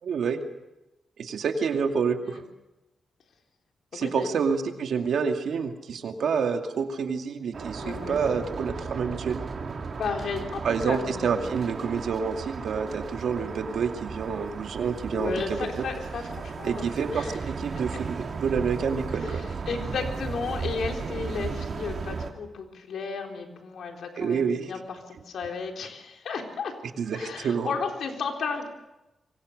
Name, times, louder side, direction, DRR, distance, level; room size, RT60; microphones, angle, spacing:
voice 1, 0.0-0.4 1.2-2.4 3.9-9.4 10.6-15.4 15.8-15.9 16.6-19.5 24.2-24.7 27.0-27.7, right 6 dB, 75° right, 5 dB, 2.3 m, -28 dB
voice 2, 3.9-4.3 7.8-8.5 10.0-11.5 15.1-17.4 17.9-18.0 19.1-26.7 27.1-28.7, left 5 dB, 75° left, 3 dB, 3.8 m, -34 dB
sound 1, 7.5-22.3, right 5 dB, 45° right, 2.6 m, -35 dB
27.0 x 24.0 x 6.6 m, 0.97 s
wide cardioid pair, 130°, 0 cm